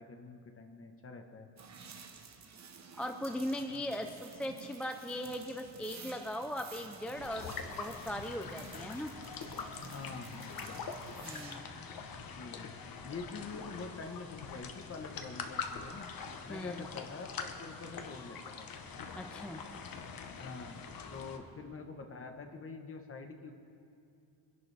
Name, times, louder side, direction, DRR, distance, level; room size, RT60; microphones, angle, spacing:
voice 1, 0.0-1.5 3.7-4.1 9.8-10.8 12.3-12.7 13.0-16.1 16.5-18.7 20.4-20.8 21.1-23.5, left 4 dB, 30° left, 4 dB, 1.2 m, -46 dB
sound 1, 1.6-11.5, right 5 dB, 40° right, 1.1 m, -52 dB
voice 2, 3.0-9.1 11.2-11.9 16.5-16.8 19.1-19.6, equal, 5° left, 5 dB, 0.3 m, -39 dB
sound 2, 7.1-21.4, left 5 dB, 55° left, 1.1 m, -44 dB
24.0 x 11.0 x 3.4 m, 2.6 s
cardioid pair, 155°, 42 cm